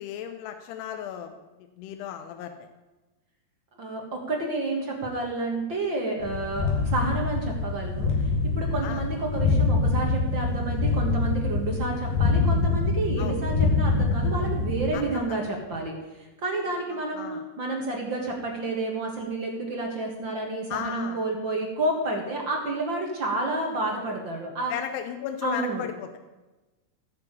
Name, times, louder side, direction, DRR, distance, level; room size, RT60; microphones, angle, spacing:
voice 1, 0.0-1.3 1.6-2.7 8.8-9.0 13.2-13.4 14.9-15.4 17.1-17.4 20.7-21.2 24.7-26.2, left 9 dB, 80° left, 7 dB, 2.9 m, -35 dB
voice 2, 3.8-8.1 8.5-15.9 16.4-17.3 17.6-24.7 25.4-25.8, right 2 dB, 45° right, 0 dB, 1.7 m, -30 dB
sound 1, 6.2-14.9, left 3 dB, 65° left, 3.8 m, -25 dB
15.5 x 7.0 x 8.2 m, 1.1 s
omnidirectional pair, 4.7 m